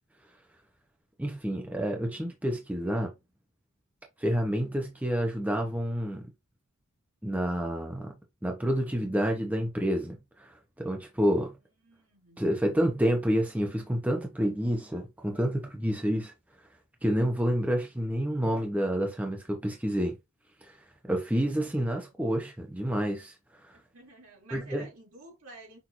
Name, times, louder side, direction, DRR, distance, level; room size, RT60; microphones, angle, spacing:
voice 1, 1.2-3.1 4.2-6.2 7.2-11.6 12.4-16.3 17.0-20.2 20.6-20.8 21.0-23.7 24.5-24.9, equal, 5° right, 0.6 m, -29 dB
voice 2, 11.8-12.4 23.7-25.8, right 2 dB, 80° right, 2.6 m, -51 dB
5.9 x 2.5 x 2.9 m
head